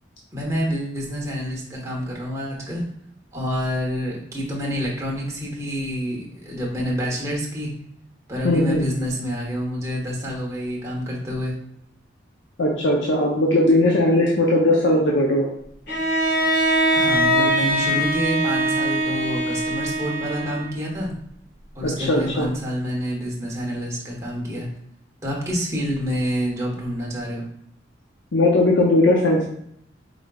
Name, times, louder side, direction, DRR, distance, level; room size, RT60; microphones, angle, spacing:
voice 1, 0.3-2.8 3.3-7.7 8.3-11.5 16.9-21.1 21.7-24.7 25.2-27.4, equal, 15° right, -3 dB, 1.1 m, -27 dB
voice 2, 8.4-8.8 12.6-15.5 21.8-22.5 28.3-29.5, left 1 dB, 85° left, -2 dB, 0.6 m, -18 dB
Bowed string instrument, 15.9-20.9, right 1 dB, 65° left, 1.4 m, -22 dB
4.9 x 3.8 x 2.3 m, 0.71 s
head